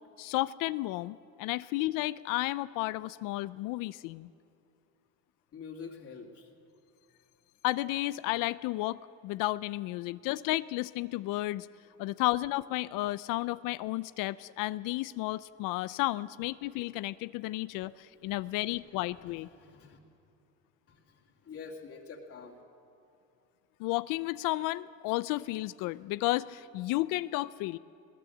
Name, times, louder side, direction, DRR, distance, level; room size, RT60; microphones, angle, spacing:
voice 1, 0.2-4.3 7.6-11.7 12.0-19.5 23.8-27.8, left 18 dB, 85° left, 17 dB, 0.5 m, -32 dB
voice 2, 5.5-6.5 18.2-20.0 20.9-22.6, left 5 dB, 45° left, 0 dB, 2.6 m, -48 dB
20.5 x 18.0 x 7.8 m, 2.6 s
cardioid pair, 105°, 32 cm